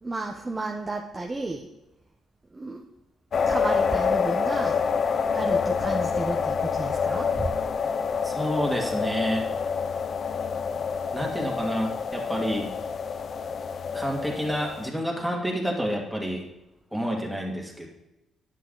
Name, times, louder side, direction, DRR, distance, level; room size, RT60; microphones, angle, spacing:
voice 1, 0.0-1.7 2.5-2.8 3.5-4.8 5.3-7.5, right 2 dB, 20° right, 1 dB, 0.9 m, -32 dB
sound 1, 3.3-14.9, left 6 dB, 50° left, 0.5 m, -27 dB
voice 2, 8.2-9.5 11.1-12.7 13.9-16.5 16.9-17.9, equal, 5° right, -1 dB, 2.3 m, -29 dB
10.0 x 8.2 x 4.0 m, 0.95 s
cardioid pair, 90°, 0 cm